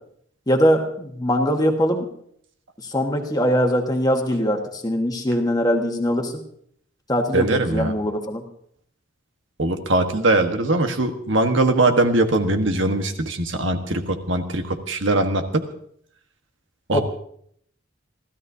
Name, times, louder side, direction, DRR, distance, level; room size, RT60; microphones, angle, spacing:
voice 1, 0.5-2.1 2.8-6.4 7.1-8.4 16.9-17.0, equal, 20° left, 3 dB, 1.5 m, -21 dB
voice 2, 7.3-7.9 9.6-15.4 16.9-17.0, right 2 dB, 70° right, 6 dB, 1.3 m, -21 dB
29.5 x 13.5 x 2.7 m, 0.66 s
head